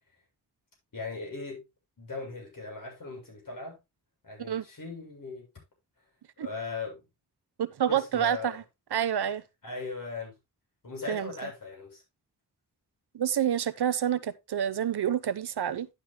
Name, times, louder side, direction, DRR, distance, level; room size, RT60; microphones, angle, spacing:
voice 1, 0.9-1.6 2.0-3.8 4.2-5.5 6.4-7.0 7.9-8.6 9.6-10.3 10.8-12.0, left 4 dB, 55° left, 7.7 m, -38 dB
voice 2, 7.6-8.6 8.9-9.4 11.1-11.3 13.1-15.9, right 9 dB, 80° right, 0.9 m, -28 dB
11.5 x 11.5 x 2.2 m
wide cardioid pair, 150°, 39 cm